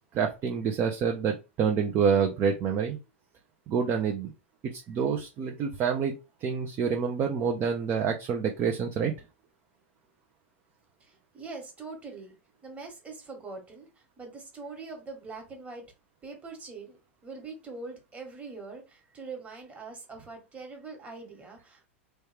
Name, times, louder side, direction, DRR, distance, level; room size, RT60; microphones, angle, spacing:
voice 1, 0.1-3.0 3.7-4.3 4.7-6.1 6.4-9.1, right 6 dB, 35° right, 0.5 m, -27 dB
voice 2, 11.0-12.3 12.6-13.9 14.2-15.8 16.2-17.0 17.2-21.9, right 4 dB, 20° right, 1.3 m, -43 dB
3.1 x 2.3 x 3.3 m
hypercardioid pair, 100°, 7 cm